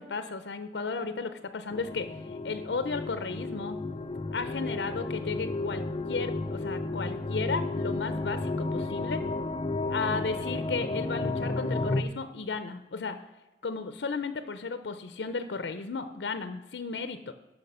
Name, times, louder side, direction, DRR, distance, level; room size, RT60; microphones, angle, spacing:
voice 1, 0.0-3.8 4.3-9.3 9.9-13.2 13.6-17.3, left 4 dB, 70° left, 10 dB, 0.6 m, -34 dB
sound 1, 1.7-12.0, left 2 dB, 30° left, 0.5 m, -32 dB
12.5 x 5.6 x 5.4 m, 1.1 s
head